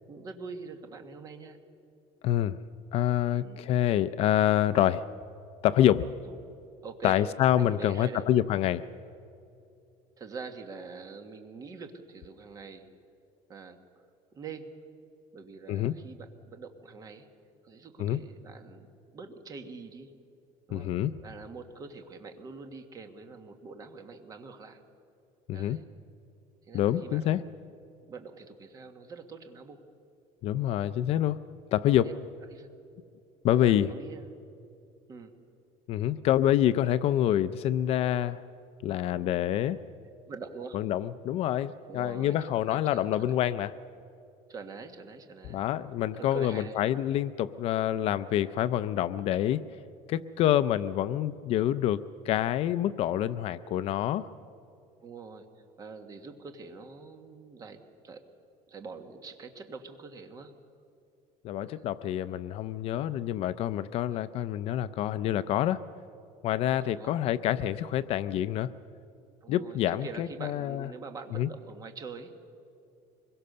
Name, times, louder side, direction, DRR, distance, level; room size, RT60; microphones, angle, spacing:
voice 1, 0.1-1.6 3.4-3.8 6.3-6.4 6.8-7.2 7.5-8.2 10.2-12.9 13.5-14.0 14.3-14.7 15.3-17.3 17.6-18.9 19.1-20.1 20.7-20.9 21.2-24.8 25.5-25.8 26.7-27.4 28.1-29.8 32.0-32.1 32.5-32.7 33.6-34.4 35.1-35.3 40.3-40.8 41.9-43.4 44.5-45.7 46.2-46.8 55.0-58.2 58.7-60.5 61.7-61.9 64.1-64.3 66.8-67.2 69.4-72.4, right 4 dB, 25° right, 6 dB, 1.6 m, -44 dB
voice 2, 2.2-2.6 2.9-5.1 5.6-6.1 7.0-8.9 15.7-15.9 18.0-18.2 20.7-21.1 25.5-25.8 26.7-27.4 30.4-31.4 31.7-32.1 33.4-33.9 35.9-38.4 38.8-39.8 40.7-43.7 45.5-49.6 50.1-54.3 61.4-65.8 66.4-68.7 69.5-70.9 71.3-71.5, left 12 dB, 45° left, 14 dB, 0.5 m, -27 dB
24.5 x 22.0 x 6.7 m, 2.6 s
cardioid pair, 175°, 14 cm